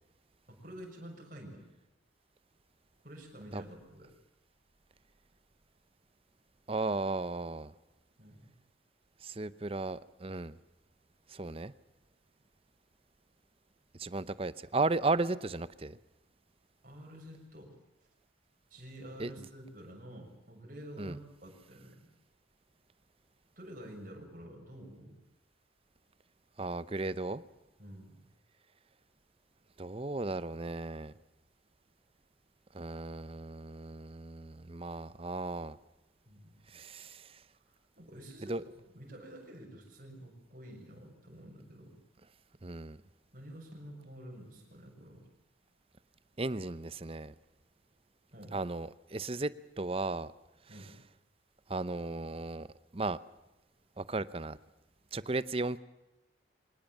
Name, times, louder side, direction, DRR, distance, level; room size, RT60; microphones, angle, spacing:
voice 1, 0.5-1.6 3.0-4.1 8.2-8.5 16.8-17.8 18.7-22.1 23.6-25.2 27.8-28.2 36.3-36.5 37.9-38.5 38.9-42.0 43.3-45.3 48.3-48.6 50.7-50.9, equal, 45° right, 1 dB, 6.6 m, -49 dB
voice 2, 6.7-7.7 9.2-10.6 11.3-11.7 14.0-16.0 19.2-19.3 21.0-21.2 26.6-27.4 29.8-31.1 32.7-35.8 36.7-37.4 38.5-38.6 42.6-43.0 46.4-47.3 48.5-50.3 51.7-52.7 52.9-53.2 54.0-54.6 55.1-55.8, right 2 dB, 30° right, 16 dB, 0.7 m, -35 dB
24.0 x 19.5 x 7.3 m, 1.0 s
head